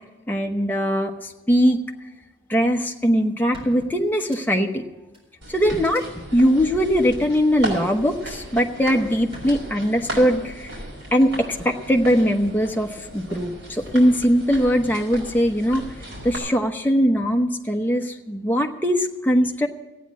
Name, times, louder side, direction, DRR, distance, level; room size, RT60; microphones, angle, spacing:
voice 1, 0.3-1.1 1.5-1.8 2.5-4.8 5.5-6.0 6.3-10.7 11.1-11.3 11.6-12.9 13.1-15.8 16.2-19.7, equal, 10° left, 2 dB, 0.9 m, -20 dB
sound 1, 2.9-3.0 3.5-4.7 5.1-5.2 5.8-6.0 7.4-7.8 9.3-9.5, right 1 dB, 30° right, 4.2 m, -43 dB
sound 2, 5.4-16.4, right 1 dB, 80° right, 4.7 m, -36 dB
14.5 x 9.4 x 7.4 m, 1.1 s
head